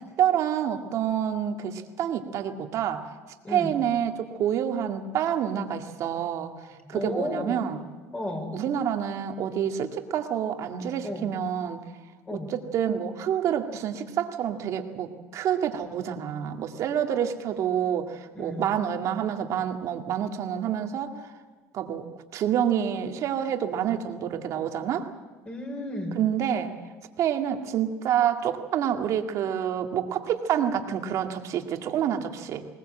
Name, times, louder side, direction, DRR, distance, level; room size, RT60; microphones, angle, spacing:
voice 1, 0.2-3.2 3.5-7.8 8.5-11.8 12.3-21.3 21.7-25.1 26.1-26.7 27.2-32.7, right 9 dB, 50° right, 5 dB, 2.0 m, -28 dB
voice 2, 3.4-3.8 6.8-7.6 8.1-8.7 11.0-11.3 12.3-12.6 18.3-18.7 25.5-26.2, left 1 dB, 20° left, 3 dB, 5.4 m, -33 dB
20.5 x 19.5 x 7.8 m, 1.4 s
supercardioid pair, 120°, 7 cm